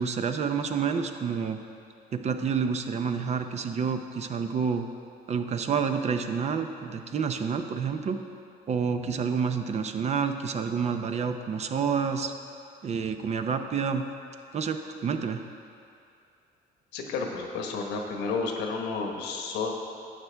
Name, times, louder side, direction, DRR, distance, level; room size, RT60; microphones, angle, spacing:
voice 1, 0.0-1.6 2.1-4.9 5.3-8.2 8.7-12.3 12.8-14.0 14.5-15.4, right 6 dB, 40° right, 7 dB, 0.6 m, -28 dB
voice 2, 16.9-19.7, left 4 dB, 90° left, 2 dB, 1.2 m, -31 dB
11.5 x 8.1 x 3.4 m, 2.5 s
cardioid pair, 110°, 17 cm